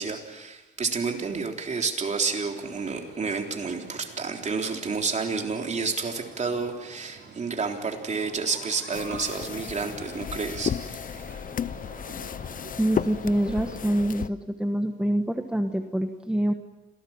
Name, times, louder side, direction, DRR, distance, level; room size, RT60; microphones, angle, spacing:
voice 1, 0.0-10.8 11.1-11.3, right 4 dB, 35° right, 3 dB, 3.6 m, -30 dB
sound 1, 1.9-14.1, right 5 dB, 60° right, 6.0 m, -48 dB
sound 2, 8.9-14.3, left 8 dB, 45° left, 0.7 m, -33 dB
voice 2, 12.8-16.5, right 1 dB, 5° right, 5 dB, 1.4 m, -26 dB
27.0 x 18.0 x 7.3 m, 1.1 s
cardioid pair, 90°, 20 cm